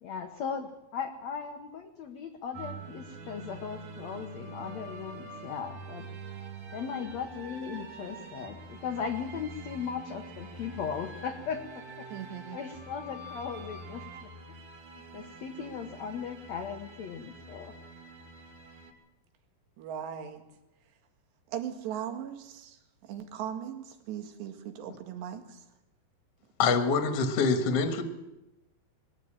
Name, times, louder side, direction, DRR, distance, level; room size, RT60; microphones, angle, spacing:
voice 1, 0.0-6.1 6.7-12.1 12.5-14.6 15.1-17.7, left 6 dB, 75° left, 6 dB, 1.5 m, -38 dB
sound 1, 2.5-18.9, right 2 dB, 45° right, 3.5 m, -45 dB
voice 2, 12.1-12.7 19.8-20.4 21.5-25.7, right 9 dB, 80° right, 6 dB, 4.0 m, -39 dB
voice 3, 26.6-28.0, left 4 dB, 50° left, 7 dB, 2.1 m, -25 dB
22.0 x 15.0 x 8.8 m, 0.96 s
omnidirectional pair, 4.9 m